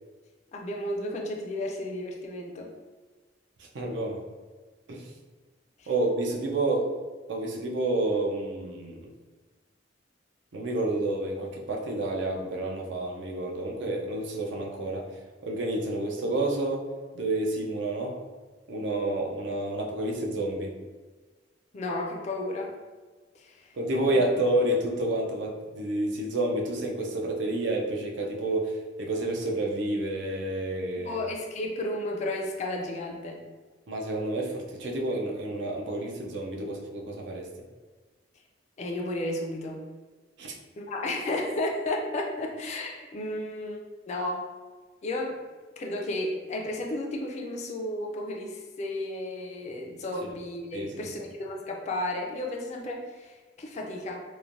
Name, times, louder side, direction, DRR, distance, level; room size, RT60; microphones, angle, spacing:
voice 1, 0.5-2.7 5.8-5.9 21.7-22.7 23.3-23.7 24.1-24.2 31.0-33.4 38.8-39.8 40.8-44.4 45.0-45.4 45.8-54.2, left 1 dB, 40° left, 0 dB, 0.3 m, -33 dB
voice 2, 3.7-4.2 4.9-5.1 5.9-6.9 7.3-9.1 10.5-15.1 15.4-16.8 17.1-18.2 18.7-20.7 23.8-31.3 33.9-37.5 40.4-40.5 50.7-51.1, right 2 dB, 75° right, -1 dB, 0.5 m, -29 dB
3.1 x 2.1 x 2.5 m, 1.4 s
head